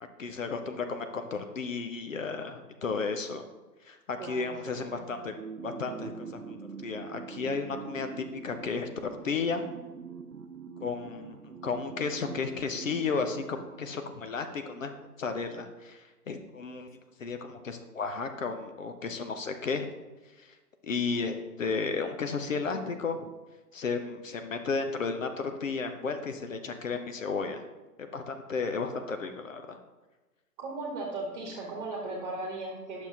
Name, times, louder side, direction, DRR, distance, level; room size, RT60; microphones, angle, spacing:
voice 1, 0.2-3.4 3.8-5.3 5.6-9.6 10.8-11.4 11.6-16.9 17.2-19.9 20.4-20.5 20.8-23.3 23.7-27.6 28.1-29.8, left 4 dB, 55° left, 7 dB, 0.8 m, -33 dB
voice 2, 4.2-5.2 30.6-33.1, right 2 dB, 30° right, -1 dB, 1.4 m, -37 dB
sound 1, 5.4-14.4, right 5 dB, 75° right, 0.8 m, -44 dB
9.7 x 6.3 x 2.8 m, 1.2 s
figure-of-eight pair, 125°, 47 cm